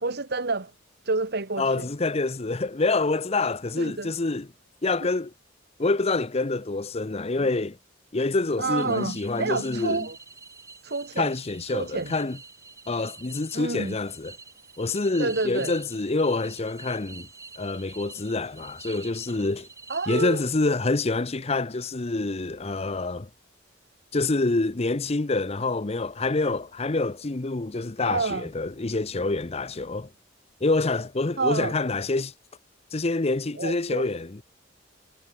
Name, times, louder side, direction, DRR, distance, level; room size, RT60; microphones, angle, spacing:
voice 1, 0.0-0.7 1.0-1.9 3.8-4.1 8.6-10.2 10.8-11.3 11.7-12.1 13.5-14.0 15.2-15.7 19.9-20.4 28.0-28.5 31.4-31.7 33.6-34.1, right 3 dB, 55° right, 1.6 m, -28 dB
voice 2, 1.6-4.5 4.8-5.3 5.8-7.8 8.1-10.1 11.2-12.4 12.9-14.3 14.8-17.3 17.6-19.7 20.1-23.3 24.1-30.1 30.6-32.3 32.9-34.4, left 3 dB, 30° left, 0.8 m, -26 dB
sound 1, 8.8-20.7, right 4 dB, 15° right, 7.1 m, -47 dB
head